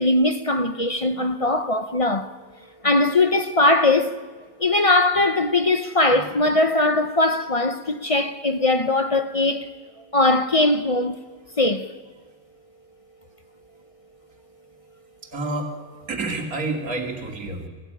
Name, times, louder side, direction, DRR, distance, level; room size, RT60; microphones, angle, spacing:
voice 1, 0.0-2.4 2.8-4.2 4.6-9.7 10.1-11.2 11.6-11.9, left 2 dB, 30° left, 0.7 m, -20 dB
voice 2, 15.2-15.8 16.1-17.7, right 2 dB, 75° right, 3.0 m, -29 dB
25.5 x 15.0 x 9.9 m
omnidirectional pair, 1.5 m